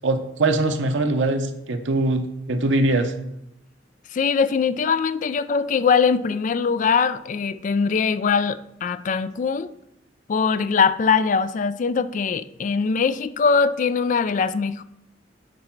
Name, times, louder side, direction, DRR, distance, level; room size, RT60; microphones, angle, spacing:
voice 1, 0.0-3.1, right 2 dB, 85° right, 5 dB, 0.7 m, -22 dB
voice 2, 4.1-9.7 10.3-14.8, left 5 dB, 45° left, 14 dB, 0.3 m, -22 dB
9.4 x 4.3 x 4.5 m, 0.83 s
head